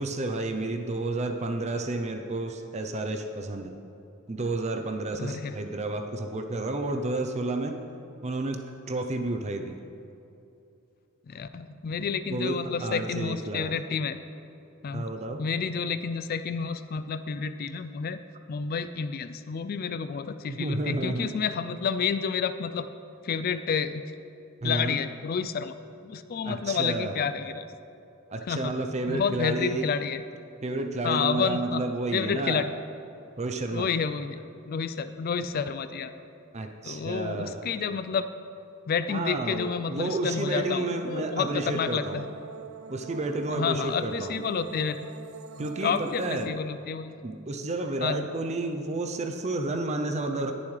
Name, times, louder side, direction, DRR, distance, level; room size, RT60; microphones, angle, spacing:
voice 1, 0.0-3.8 4.3-7.8 8.2-9.8 12.3-13.7 14.9-15.4 20.5-21.3 24.6-25.0 26.4-27.2 28.3-29.9 30.6-32.7 33.4-33.9 36.5-37.7 39.1-42.2 42.9-44.4 45.6-46.6 47.2-50.5, right 2 dB, 35° right, 5 dB, 0.6 m, -31 dB
voice 2, 5.1-5.5 11.3-14.2 14.8-15.1 15.4-18.2 18.5-22.9 23.2-24.0 24.6-25.7 26.0-27.7 28.5-28.7 29.1-30.2 31.0-31.8 32.1-32.7 33.7-36.1 36.8-38.3 38.9-42.2 43.5-45.0 45.6-47.1 48.0-48.3, left 6 dB, 45° left, 11 dB, 0.3 m, -30 dB
sound 1, 40.5-46.5, right 6 dB, 85° right, 0.6 m, -43 dB
18.5 x 7.1 x 3.3 m, 2.7 s
head